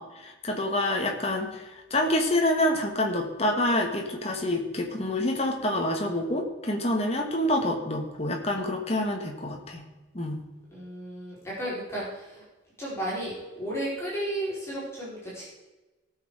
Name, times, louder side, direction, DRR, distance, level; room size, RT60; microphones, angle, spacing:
voice 1, 0.0-9.9 10.1-10.4, left 1 dB, 30° left, 1 dB, 1.7 m, -27 dB
voice 2, 10.7-12.4 12.8-15.4, right 1 dB, 15° left, -8 dB, 4.7 m, -33 dB
18.0 x 7.0 x 5.0 m, 1.1 s
head